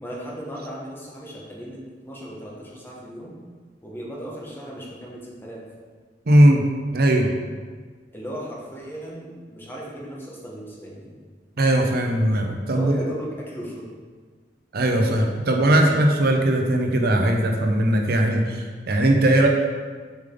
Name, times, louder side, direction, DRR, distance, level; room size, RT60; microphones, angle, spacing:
voice 1, 0.0-3.4 3.8-5.6 8.1-11.1 12.7-13.9, equal, 15° left, -4 dB, 1.3 m, -36 dB
voice 2, 6.3-6.6 6.9-7.3 11.6-13.0 14.7-19.5, right 1 dB, 60° right, 3 dB, 0.7 m, -19 dB
7.0 x 5.1 x 3.9 m, 1.5 s
head